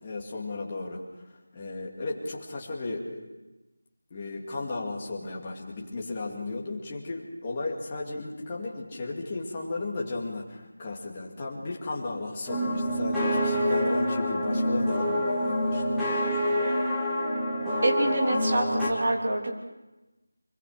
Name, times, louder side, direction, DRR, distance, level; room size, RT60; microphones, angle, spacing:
voice 1, 0.0-3.3 4.1-16.1, left 2 dB, 15° left, -3 dB, 2.4 m, -35 dB
sound 1, 12.5-18.9, equal, ahead, 1.9 m, -26 dB
voice 2, 17.8-19.5, right 1 dB, 35° right, 0 dB, 3.3 m, -26 dB
25.0 x 23.5 x 5.0 m, 1.1 s
figure-of-eight pair, 175°, 0 cm